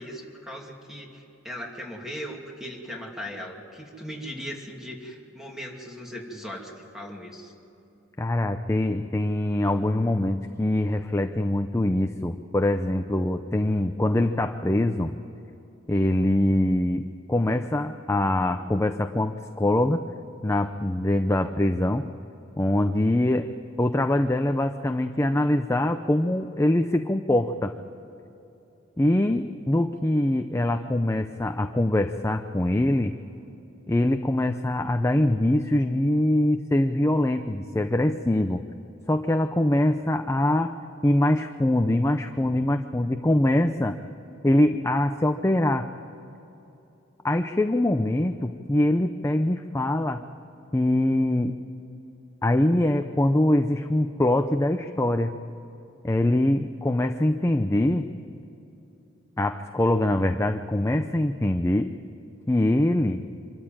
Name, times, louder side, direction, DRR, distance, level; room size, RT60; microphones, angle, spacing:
voice 1, 0.0-7.5, equal, ahead, 0 dB, 2.5 m, -38 dB
voice 2, 8.2-15.1 15.9-20.0 20.4-22.1 22.6-23.5 23.8-27.7 29.0-33.2 33.9-38.6 39.1-40.7 41.0-44.0 44.4-45.9 47.2-50.2 50.7-51.5 52.4-55.3 56.0-58.1 59.4-61.9 62.5-63.2, left 1 dB, 15° left, 6 dB, 0.6 m, -23 dB
25.5 x 13.0 x 8.9 m, 2.9 s
head